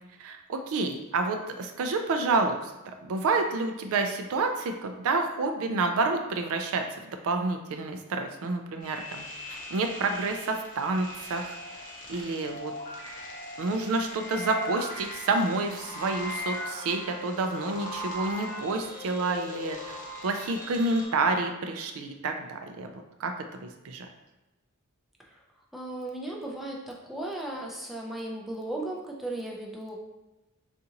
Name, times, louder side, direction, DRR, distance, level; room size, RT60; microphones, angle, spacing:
voice 1, 0.2-12.7 13.6-20.0 20.2-24.1, right 3 dB, 70° right, 5 dB, 0.4 m, -29 dB
sound 1, 8.8-21.0, left 1 dB, 35° left, 0.6 m, -39 dB
voice 2, 25.7-30.0, right 1 dB, ahead, -2 dB, 0.4 m, -36 dB
3.9 x 2.5 x 2.8 m, 1.0 s
head